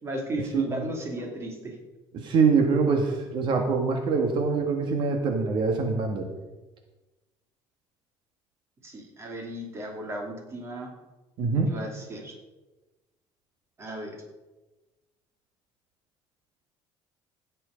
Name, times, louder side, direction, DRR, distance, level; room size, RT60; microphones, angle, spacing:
voice 1, 0.0-1.8 8.8-10.9 11.7-12.4 13.8-14.2, right 1 dB, 25° right, 2 dB, 2.7 m, -35 dB
voice 2, 2.1-6.3 11.4-11.7, right 4 dB, 55° right, 4 dB, 1.6 m, -24 dB
16.5 x 7.6 x 5.1 m, 1.1 s
cardioid pair, 155°, 10 cm